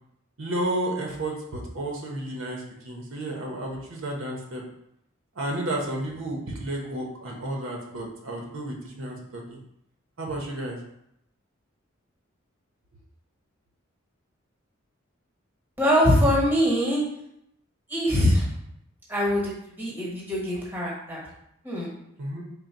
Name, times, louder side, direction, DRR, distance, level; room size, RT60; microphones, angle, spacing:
voice 1, 0.4-4.6 5.4-9.6 10.2-10.8 22.2-22.4, right 1 dB, 75° right, 0 dB, 0.8 m, -32 dB
voice 2, 15.8-17.0 17.9-18.5 19.1-21.2 21.6-21.9, equal, 10° right, -5 dB, 1.1 m, -23 dB
3.8 x 2.2 x 4.4 m, 0.78 s
head